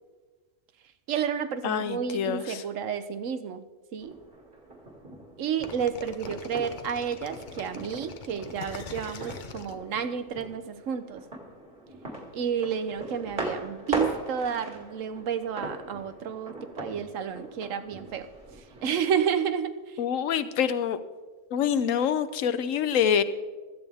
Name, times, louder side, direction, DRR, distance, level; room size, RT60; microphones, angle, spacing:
voice 1, 1.1-3.6 3.9-4.2 5.4-11.2 12.3-18.3 18.6-20.0, right 7 dB, 80° right, 10 dB, 1.2 m, -31 dB
voice 2, 1.6-2.6 20.0-21.0 21.5-23.2, left 8 dB, 85° left, 13 dB, 1.1 m, -26 dB
sound 1, 4.0-18.9, right 1 dB, 45° right, 2.3 m, -40 dB
sound 2, 5.6-10.4, left 5 dB, 45° left, 0.8 m, -43 dB
16.0 x 13.5 x 3.5 m, 1.3 s
omnidirectional pair, 1.3 m